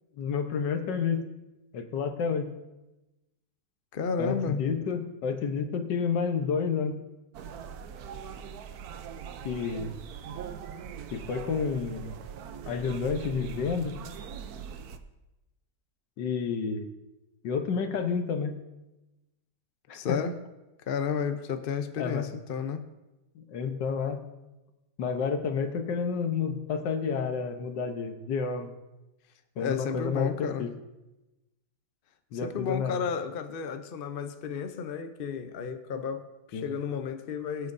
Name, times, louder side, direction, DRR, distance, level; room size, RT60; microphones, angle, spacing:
voice 1, 0.2-1.3 1.7-2.5 4.2-7.0 9.4-9.9 11.1-12.1 12.7-14.0 16.2-16.9 17.4-18.6 19.9-20.2 22.0-22.3 23.3-24.2 25.0-28.7 29.6-30.7 32.3-33.0 36.5-36.7, left 6 dB, 80° left, 7 dB, 1.6 m, -30 dB
voice 2, 3.9-4.9 19.9-20.3 20.9-22.8 29.6-30.7 32.4-37.7, left 6 dB, 60° left, 8 dB, 0.6 m, -32 dB
sound 1, 7.3-15.0, right 7 dB, 70° right, 1.1 m, -41 dB
22.0 x 8.6 x 2.6 m, 1.0 s
omnidirectional pair, 1.9 m